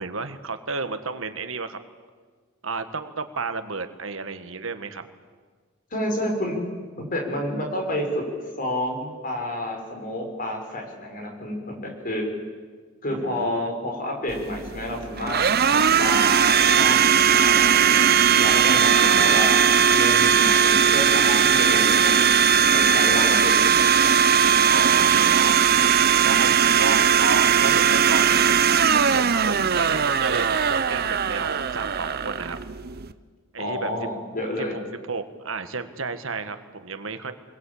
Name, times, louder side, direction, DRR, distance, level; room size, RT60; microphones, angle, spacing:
voice 1, 0.0-1.8 2.6-5.0 13.1-13.7 15.7-15.8 19.0-19.4 24.7-25.7 26.2-28.6 28.9-32.6 33.5-33.9 34.6-34.8 35.1-37.3, right 4 dB, 70° right, 9 dB, 1.6 m, -32 dB
voice 2, 5.9-6.6 7.0-8.2 8.6-12.2 13.0-15.4 16.0-18.0 18.4-19.6 19.9-22.4 22.7-24.1 33.6-34.8, left 1 dB, 45° left, 2 dB, 6.3 m, -29 dB
Domestic sounds home sounds, 14.3-33.1, right 7 dB, 50° right, 0.9 m, -19 dB
27.0 x 21.5 x 8.6 m, 1.5 s
head